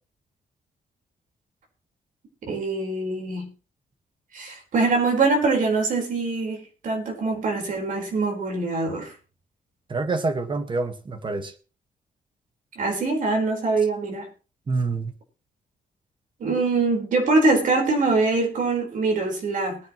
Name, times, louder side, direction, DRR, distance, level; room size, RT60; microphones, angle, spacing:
voice 1, 2.4-3.5 4.3-9.1 12.8-14.3 16.4-19.8, right 3 dB, 70° right, 2 dB, 4.7 m, -23 dB
voice 2, 9.9-11.5 14.7-15.1, right 3 dB, 35° right, 9 dB, 1.7 m, -26 dB
20.0 x 10.0 x 3.2 m, 0.34 s
cardioid pair, 110°, 14 cm